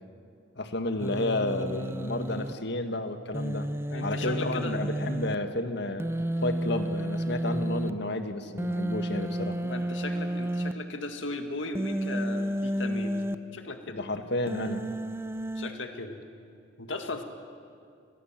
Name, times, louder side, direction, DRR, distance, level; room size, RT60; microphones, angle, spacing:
voice 1, 0.6-3.7 4.0-6.1 6.4-9.6 13.9-14.8, left 2 dB, 60° left, 8 dB, 1.7 m, -31 dB
Human voice, 1.0-2.5 3.3-5.4 6.0-7.9 8.6-10.7 11.8-13.4 14.5-15.7, right 1 dB, 15° right, 0.7 m, -31 dB
voice 2, 3.9-4.8 9.6-13.2 13.5-14.0 15.6-16.2 16.8-17.2, left 2 dB, 80° left, 6 dB, 2.0 m, -37 dB
30.0 x 22.0 x 7.5 m, 2.4 s
head